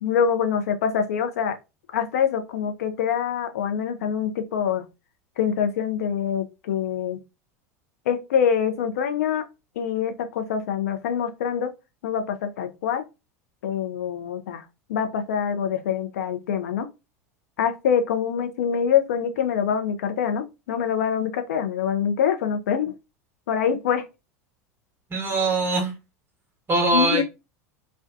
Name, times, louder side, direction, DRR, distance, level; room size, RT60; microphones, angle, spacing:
voice 1, 0.0-1.6 1.9-4.8 5.4-7.2 8.1-9.4 9.8-11.7 12.0-13.0 13.6-14.6 14.9-16.9 17.6-22.9 23.5-24.0 26.9-27.2, left 8 dB, 75° left, 0.5 m, -25 dB
voice 2, 25.1-25.9 26.7-27.2, right 2 dB, 25° right, 0.8 m, -22 dB
2.5 x 2.2 x 2.4 m
hypercardioid pair, 85°, 8 cm